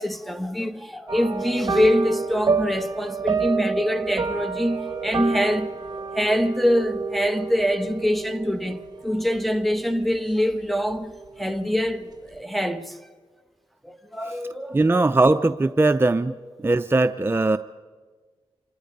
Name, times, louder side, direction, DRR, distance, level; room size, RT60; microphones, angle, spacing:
voice 1, 0.0-13.0 13.8-14.8, equal, ahead, 1.2 m, -25 dB
sound 1, 1.1-10.7 10.9-11.3 11.7-11.8, right 5 dB, 45° right, 1.3 m, -29 dB
voice 2, 14.7-16.3 16.6-17.6, right 2 dB, 20° right, 0.5 m, -19 dB
26.0 x 20.0 x 5.3 m
cardioid pair, 60°, 10 cm